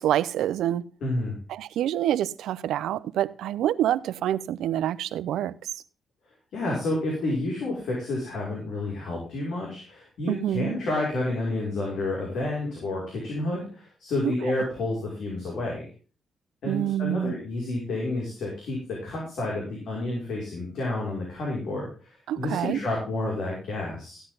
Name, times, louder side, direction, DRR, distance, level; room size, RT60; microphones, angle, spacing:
voice 1, 0.0-0.8 1.5-5.5 10.3-10.8 16.7-17.3 22.3-22.8, right 11 dB, 90° right, 0.6 m, -26 dB
voice 2, 1.0-1.4 6.5-15.9 16.6-24.2, left 2 dB, 80° left, 5.8 m, -30 dB
15.5 x 10.0 x 3.9 m
cardioid pair, 75°, 0 cm